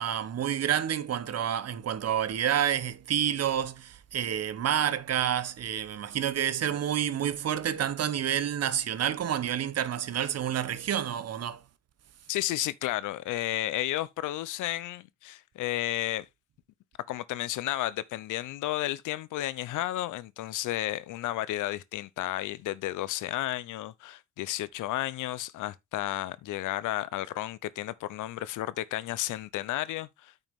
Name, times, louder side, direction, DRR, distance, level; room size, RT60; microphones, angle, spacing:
voice 1, 0.0-11.6, right 9 dB, 55° right, 1.0 m, -29 dB
voice 2, 12.3-16.3 17.1-30.3, left 15 dB, 85° left, 0.7 m, -32 dB
9.1 x 5.8 x 3.6 m
cardioid pair, 90°, 30 cm